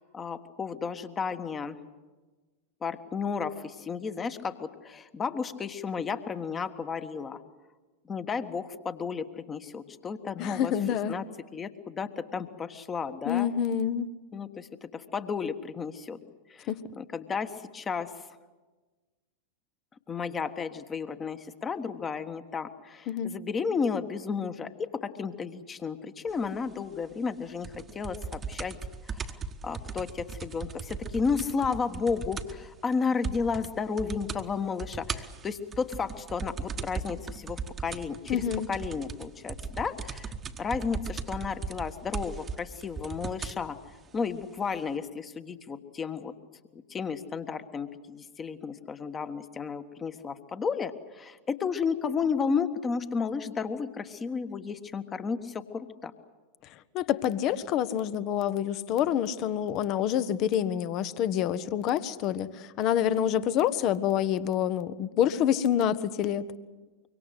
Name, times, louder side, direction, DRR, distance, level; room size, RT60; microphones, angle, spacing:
voice 1, 0.0-1.8 2.8-7.4 8.0-10.7 11.1-11.2 11.5-13.5 14.3-16.2 16.5-18.1 20.1-28.8 29.0-38.4 38.7-43.8 44.1-46.3 46.7-56.1, left 5 dB, 20° left, 9 dB, 1.5 m, -33 dB
voice 2, 10.4-11.2 13.2-14.1 16.7-16.8 23.1-23.3 38.3-38.7 56.9-66.5, left 10 dB, 40° left, 15 dB, 1.1 m, -27 dB
sound 1, 27.6-32.7 32.9-33.0 33.2-33.7 34.0-34.4 34.8-43.6 44.4-44.5, right 5 dB, 20° right, 1.3 m, -37 dB
25.0 x 24.0 x 8.1 m, 1.3 s
figure-of-eight pair, 90°, 0 cm